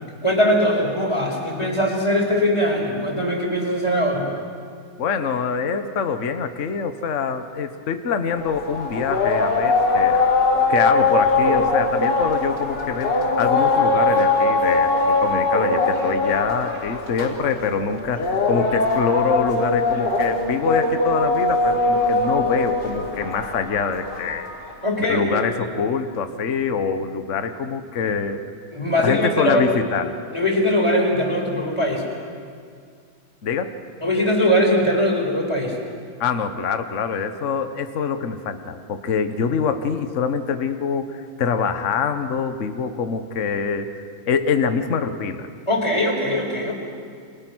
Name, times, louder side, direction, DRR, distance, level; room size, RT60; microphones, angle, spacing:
voice 1, 0.2-4.3 24.8-25.7 28.7-29.7 30.3-32.0 34.0-35.8 45.7-46.7, equal, 15° left, -1 dB, 5.2 m, -21 dB
voice 2, 5.0-10.3 10.7-24.5 25.1-28.4 29.0-30.2 33.4-33.7 36.2-43.9 44.3-45.5, left 6 dB, 45° left, 8 dB, 1.3 m, -25 dB
sound 1, 8.4-24.7, left 3 dB, 70° left, 4.5 m, -21 dB
30.0 x 26.5 x 6.3 m, 2.1 s
omnidirectional pair, 2.0 m